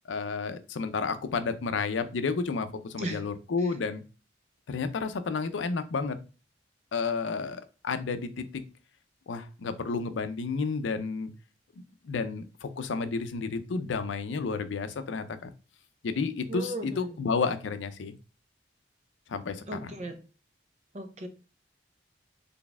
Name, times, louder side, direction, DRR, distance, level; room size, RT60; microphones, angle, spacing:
voice 1, 0.1-4.0 4.7-6.2 6.9-8.6 9.3-11.3 11.8-15.5 16.0-18.1 19.3-19.9, left 4 dB, 90° left, 11 dB, 0.5 m, -31 dB
voice 2, 16.5-17.2 19.7-20.2 20.9-21.3, right 1 dB, 35° right, 6 dB, 0.6 m, -36 dB
4.0 x 3.4 x 2.3 m, 0.34 s
head